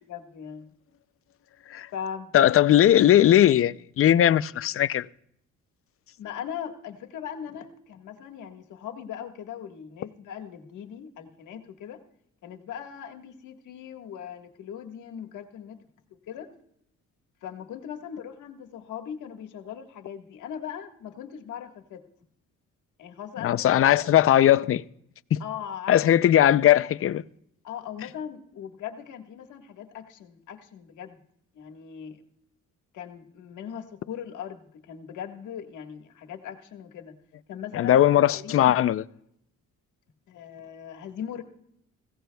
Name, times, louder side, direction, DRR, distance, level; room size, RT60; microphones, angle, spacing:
voice 1, 0.0-0.7 1.9-2.3 6.2-12.0 12.4-15.8 16.3-16.5 17.4-22.0 23.0-23.9 25.4-26.2 27.6-31.2 31.5-32.2 32.9-37.1 37.5-38.0 38.3-38.8 40.3-41.4, left 8 dB, 80° left, 1.6 m, -39 dB
voice 2, 2.3-5.1 23.4-24.8 25.3-25.4 25.9-27.2 37.7-39.0, left 11 dB, 45° left, 0.5 m, -19 dB
21.0 x 16.5 x 2.3 m
cardioid pair, 90°, 30 cm